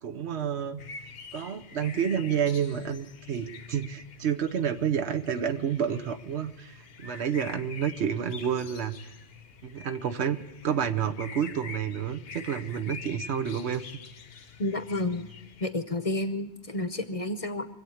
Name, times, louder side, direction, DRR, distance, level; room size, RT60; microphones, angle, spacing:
voice 1, 0.0-0.8 1.3-9.1 9.6-10.4 10.6-13.9, right 8 dB, 80° right, 7 dB, 1.2 m, -29 dB
sound 1, 0.8-15.7, left 5 dB, 65° left, 1.0 m, -46 dB
voice 2, 14.6-15.3 15.6-17.7, left 2 dB, 35° left, 9 dB, 0.8 m, -30 dB
24.0 x 8.3 x 7.2 m, 0.89 s
omnidirectional pair, 1.1 m